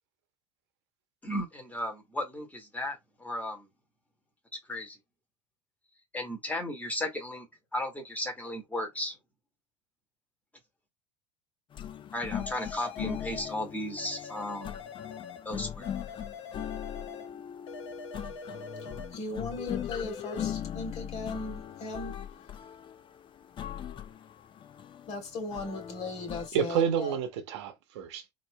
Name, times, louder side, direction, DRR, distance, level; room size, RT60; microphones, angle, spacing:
voice 1, 1.2-3.6 4.7-5.0 6.1-7.5 7.7-9.1 12.1-14.9 15.4-15.9, left 1 dB, 10° left, 1.8 m, -35 dB
sound 1, 11.7-26.5, left 9 dB, 35° left, 0.5 m, -40 dB
sound 2, 12.3-13.6 14.0-15.5 15.8-17.3 17.7-19.2 19.5-20.5, left 6 dB, 75° left, 0.8 m, -43 dB
voice 2, 19.1-22.2 25.1-27.2, left 3 dB, 50° left, 2.0 m, -37 dB
voice 3, 26.5-28.3, right 8 dB, 75° right, 1.0 m, -29 dB
4.1 x 2.9 x 2.2 m
hypercardioid pair, 80°, 15 cm